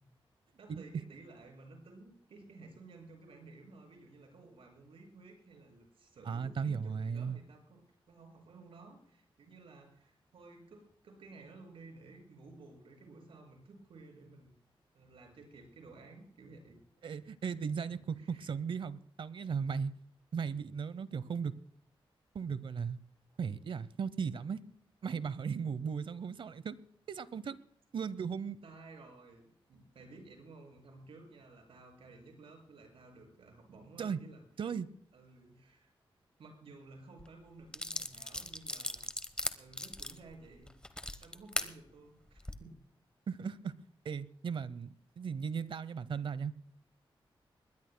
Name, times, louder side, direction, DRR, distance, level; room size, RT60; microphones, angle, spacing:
voice 1, 0.6-7.8 8.1-14.5 14.9-16.8 17.7-18.5 28.6-34.4 35.1-35.9 36.4-39.0 39.6-40.7 41.2-42.8, right 3 dB, 80° right, 2 dB, 6.4 m, -54 dB
voice 2, 6.3-7.4 17.0-19.9 20.3-21.5 22.3-23.0 23.4-24.6 25.0-26.8 27.1-27.6 27.9-28.6 34.0-34.2 34.6-34.9 43.3-43.7 44.0-46.5, right 6 dB, 65° right, 17 dB, 0.8 m, -36 dB
sound 1, 37.2-37.3 37.7-41.7 42.3-42.5, left 1 dB, 10° left, 1.0 m, -38 dB
21.5 x 20.0 x 2.2 m, 0.63 s
wide cardioid pair, 145°, 9 cm